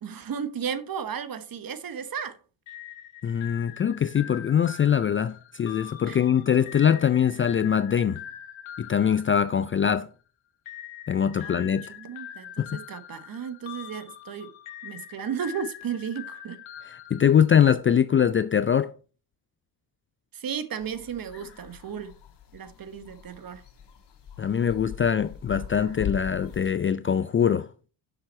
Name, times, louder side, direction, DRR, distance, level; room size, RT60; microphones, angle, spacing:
voice 1, 0.0-2.4 6.1-6.2 11.4-14.5 14.8-16.6 20.3-22.1 22.5-23.6, right 7 dB, 45° right, 1.1 m, -34 dB
sound 1, 2.7-10.1 10.7-17.9, left 11 dB, 75° left, 1.2 m, -43 dB
voice 2, 3.2-8.2 8.8-10.1 11.1-11.9 12.6-12.8 16.9-19.0 24.4-27.7, left 8 dB, 30° left, 0.3 m, -23 dB
sound 2, 20.8-26.7, left 8 dB, 60° left, 1.6 m, -41 dB
7.0 x 5.8 x 4.2 m
cardioid pair, 80°, 47 cm